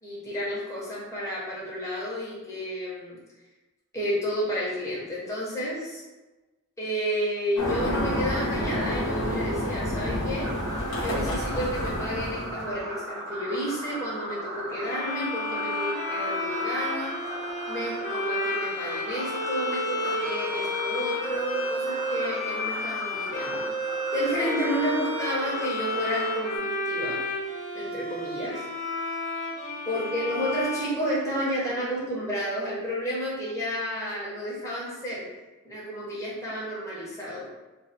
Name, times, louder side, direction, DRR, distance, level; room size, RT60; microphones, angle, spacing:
voice 1, 0.0-3.2 3.9-6.0 6.8-10.5 11.0-17.1 17.7-23.7 24.1-27.2 27.7-28.6 29.8-35.3 35.6-37.5, equal, 15° left, -7 dB, 1.0 m, -31 dB
sound 1, 7.5-12.8, equal, 65° left, 0.9 m, -29 dB
sound 2, 10.4-26.6, right 1 dB, 70° right, 0.7 m, -37 dB
sound 3, 14.8-31.7, left 1 dB, 30° left, 0.6 m, -31 dB
3.2 x 2.2 x 4.2 m, 1.1 s
head